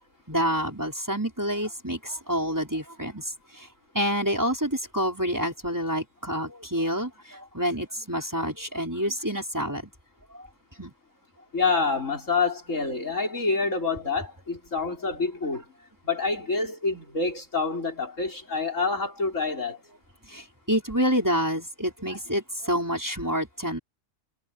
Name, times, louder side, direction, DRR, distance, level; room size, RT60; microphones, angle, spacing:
voice 1, 0.3-3.7 3.9-9.9 10.3-10.5 10.8-10.9 20.2-23.8, equal, 15° right, 5.2 m, -28 dB
voice 2, 11.5-15.6 16.0-19.8, left 4 dB, 80° left, 5.4 m, -27 dB
omnidirectional pair, 1.3 m